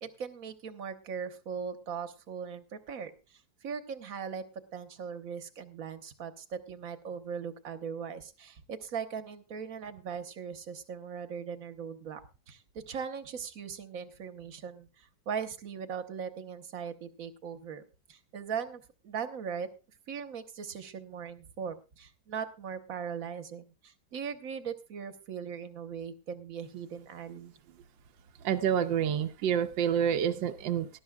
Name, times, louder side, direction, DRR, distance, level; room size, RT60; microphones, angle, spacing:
voice 1, 0.0-4.4 4.7-12.2 12.5-17.8 18.1-19.7 20.1-27.5, right 7 dB, 55° right, 8 dB, 1.4 m, -39 dB
voice 2, 28.4-30.9, right 8 dB, 80° right, 9 dB, 1.5 m, -28 dB
19.0 x 12.0 x 2.3 m, 0.31 s
omnidirectional pair, 2.0 m